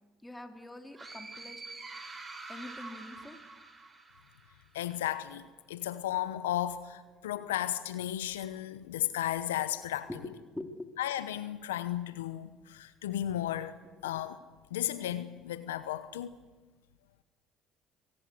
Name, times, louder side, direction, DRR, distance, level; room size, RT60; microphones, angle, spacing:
voice 1, 0.2-2.2 2.5-3.4 10.1-10.2 10.5-10.9 14.0-14.1, left 1 dB, 10° left, 3.3 m, -45 dB
sound 1, 0.9-4.6, right 3 dB, 25° right, 5.2 m, -46 dB
voice 2, 4.7-10.1 11.0-14.4 14.7-16.4, left 12 dB, 90° left, 1.0 m, -34 dB
25.0 x 19.0 x 7.8 m
hypercardioid pair, 70°, 0 cm